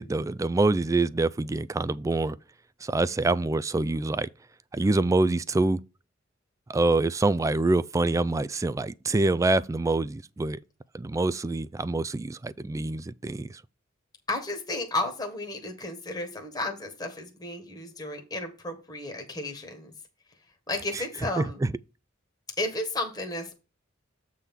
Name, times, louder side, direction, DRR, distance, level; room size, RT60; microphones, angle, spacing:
voice 1, 0.0-2.4 2.8-4.3 4.7-5.8 6.7-10.6 10.9-13.6 20.9-21.0 21.4-21.7, right 2 dB, 15° right, 0.3 m, -25 dB
voice 2, 14.3-19.9 20.7-21.6 22.6-23.5, left 2 dB, 20° left, 1.4 m, -33 dB
8.1 x 3.6 x 5.9 m
head